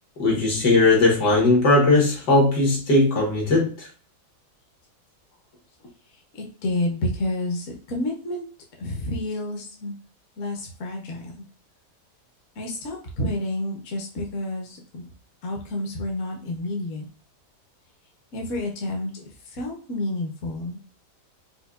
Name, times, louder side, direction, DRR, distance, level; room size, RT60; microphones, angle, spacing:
voice 1, 0.2-3.7, left 2 dB, 75° left, -2 dB, 2.1 m, -18 dB
voice 2, 6.3-8.4 8.8-9.9 10.4-11.4 12.6-15.1 15.4-17.1 18.3-20.8, left 1 dB, 55° left, 1 dB, 1.1 m, -30 dB
5.3 x 2.3 x 2.3 m, 0.40 s
omnidirectional pair, 1.8 m